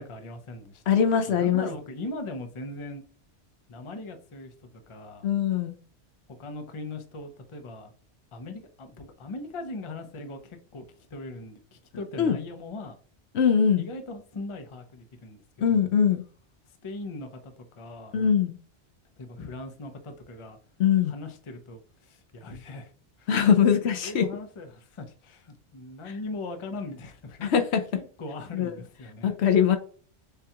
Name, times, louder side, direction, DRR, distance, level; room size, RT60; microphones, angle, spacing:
voice 1, 0.0-0.8 1.3-3.0 3.7-5.3 6.4-7.9 8.3-12.9 13.8-15.4 16.7-18.2 19.2-20.6 21.1-22.9 23.2-23.3 23.6-23.7 24.0-27.5 27.9-29.3, left 2 dB, 35° left, 0.6 m, -40 dB
voice 2, 0.9-1.7 5.2-5.8 12.2-12.4 13.3-13.9 15.6-16.2 18.1-18.6 20.8-21.1 23.3-24.3 27.4-27.8 28.5-28.7 29.2-29.8, left 8 dB, 70° left, 0.8 m, -22 dB
6.8 x 2.3 x 2.8 m
omnidirectional pair, 1.2 m